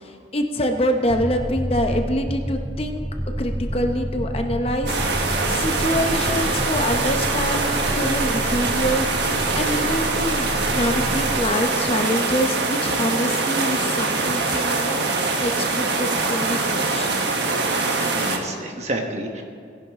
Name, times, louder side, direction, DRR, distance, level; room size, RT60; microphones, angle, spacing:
voice 1, 0.3-3.0 3.4-4.9 5.5-9.0 9.3-15.1 15.4-17.1, equal, 30° left, 5 dB, 0.8 m, -25 dB
sound 1, 1.1-11.5, equal, ahead, 0.4 m, -29 dB
sound 2, 4.9-18.4, right 3 dB, 65° right, 1.3 m, -23 dB
voice 2, 17.9-19.4, right 1 dB, 40° right, 2 dB, 1.4 m, -30 dB
18.0 x 10.5 x 3.7 m, 2.3 s
head